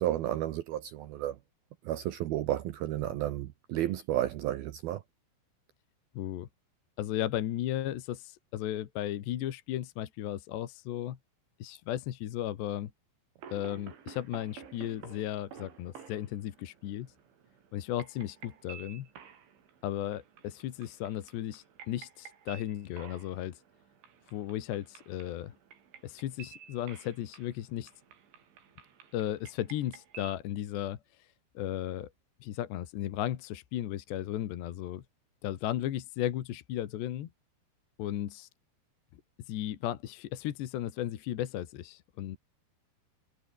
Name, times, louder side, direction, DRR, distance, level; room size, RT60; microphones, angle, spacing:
voice 1, 0.0-1.4 1.9-5.0, right 13 dB, 70° right, 2.5 m, -32 dB
voice 2, 6.2-6.5 7.0-11.2 11.6-12.9 13.5-17.1 17.7-19.1 19.8-23.6 24.3-25.6 26.0-27.9 29.1-31.3 31.6-32.1 32.4-35.0 35.4-37.3 38.0-38.5 39.5-42.4, left 12 dB, 70° left, 3.7 m, -35 dB
sound 1, 13.4-30.4, right 8 dB, 90° right, 6.3 m, -53 dB
omnidirectional pair, 5.2 m